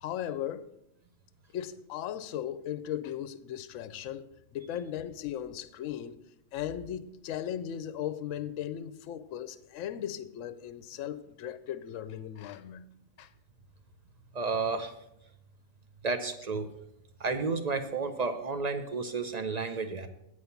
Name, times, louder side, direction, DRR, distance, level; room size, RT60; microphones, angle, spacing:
voice 1, 0.0-0.7 1.5-4.3 4.5-6.2 6.5-12.9 13.2-13.3, left 10 dB, 70° left, 0.9 m, -37 dB
voice 2, 14.3-14.9 16.0-16.7 17.2-20.1, right 4 dB, 45° right, 0.5 m, -31 dB
9.5 x 4.9 x 7.0 m
omnidirectional pair, 1.4 m